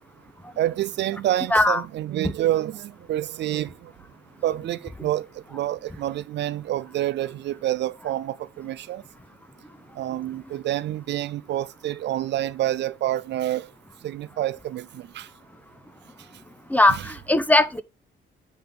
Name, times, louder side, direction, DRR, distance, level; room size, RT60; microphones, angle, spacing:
voice 1, 0.6-3.7 4.4-9.0 10.0-13.6 14.0-15.3 16.9-17.0, right 13 dB, 65° right, 0.4 m, -28 dB
voice 2, 16.7-17.8, left 2 dB, 10° left, 0.8 m, -19 dB
7.9 x 3.4 x 5.3 m
cardioid pair, 90°, 20 cm